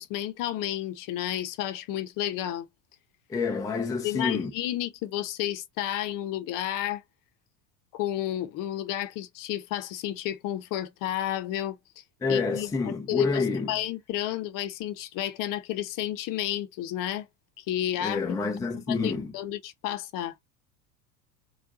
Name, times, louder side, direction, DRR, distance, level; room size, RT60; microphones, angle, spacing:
voice 1, 0.0-2.7 4.0-7.0 7.9-12.0 12.3-17.3 17.6-18.4 18.9-20.4, left 12 dB, 40° left, 0.9 m, -31 dB
voice 2, 3.3-4.5 12.2-13.7 18.0-19.3, left 4 dB, 5° left, 0.6 m, -28 dB
4.4 x 2.5 x 3.7 m
figure-of-eight pair, 80°, 49 cm